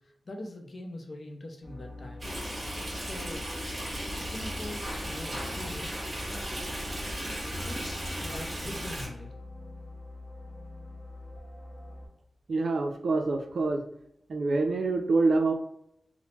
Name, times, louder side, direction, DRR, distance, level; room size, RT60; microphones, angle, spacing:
voice 1, 0.3-2.3 2.9-3.5 3.8-6.0 6.3-6.5 7.6-9.3, left 1 dB, 50° left, 3 dB, 0.6 m, -43 dB
sound 1, 1.6-12.1, left 2 dB, ahead, 1.0 m, -44 dB
Stream, 2.2-9.1, equal, 30° right, 1.2 m, -36 dB
voice 2, 12.5-13.8 14.3-15.5, right 3 dB, 70° right, 5 dB, 0.4 m, -26 dB
3.1 x 2.0 x 2.8 m, 0.76 s
cardioid pair, 65°, 0 cm